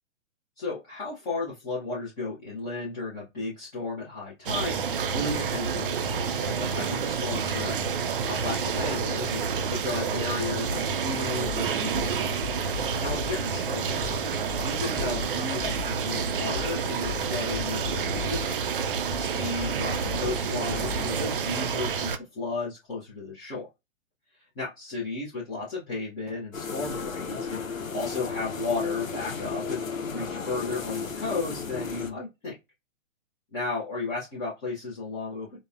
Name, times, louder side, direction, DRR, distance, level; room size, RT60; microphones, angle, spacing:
voice 1, 0.6-7.8 8.2-12.0 12.7-18.6 19.2-23.7 24.6-29.8 30.1-32.5 33.5-35.6, left 3 dB, 10° left, -7 dB, 0.4 m, -34 dB
sound 1, 4.5-22.2, right 6 dB, 45° right, 0.4 m, -29 dB
sound 2, 11.4-13.5 14.0-16.1 16.5-18.8 19.1-21.3, left 14 dB, 30° left, 1.1 m, -40 dB
sound 3, 26.5-32.1, left 5 dB, 90° left, 0.7 m, -34 dB
3.9 x 2.0 x 2.3 m, 0.22 s
figure-of-eight pair, 125°, 39 cm